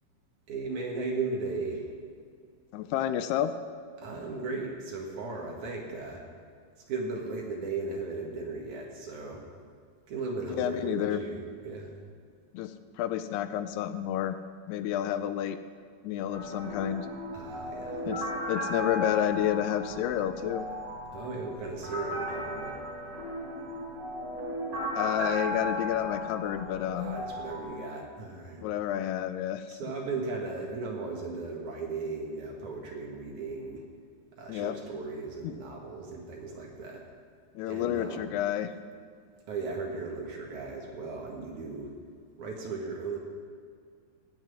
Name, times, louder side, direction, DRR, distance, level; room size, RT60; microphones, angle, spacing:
voice 1, 0.5-1.9 4.0-6.2 6.9-9.4 10.1-11.9 17.3-18.0 21.1-22.9 27.0-28.7 29.7-33.8 34.4-37.0 37.7-38.3 39.5-41.9 42.4-43.2, right 3 dB, 55° right, -1 dB, 2.6 m, -36 dB
voice 2, 2.7-3.5 10.6-11.2 12.5-14.4 14.7-15.6 16.0-17.1 18.0-20.6 24.9-27.2 28.6-29.7 34.5-34.8 35.4-35.5 37.6-38.7, left 11 dB, 85° left, 11 dB, 2.5 m, -30 dB
sound 1, 16.3-27.6, equal, 25° right, 4.4 m, -36 dB
16.5 x 6.0 x 9.5 m, 2.1 s
omnidirectional pair, 4.7 m